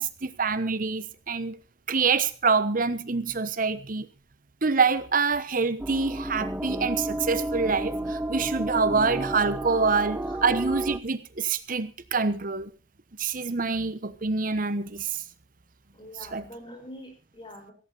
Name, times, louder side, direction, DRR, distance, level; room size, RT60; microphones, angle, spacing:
voice 1, 0.0-1.6 1.9-4.1 4.6-12.7 13.2-15.2 16.2-16.4, right 4 dB, 50° right, 1.1 m, -26 dB
sound 1, 5.8-11.0, right 1 dB, 10° right, 0.7 m, -31 dB
voice 2, 15.9-17.7, left 1 dB, 25° left, 4.5 m, -44 dB
16.0 x 15.5 x 4.0 m
head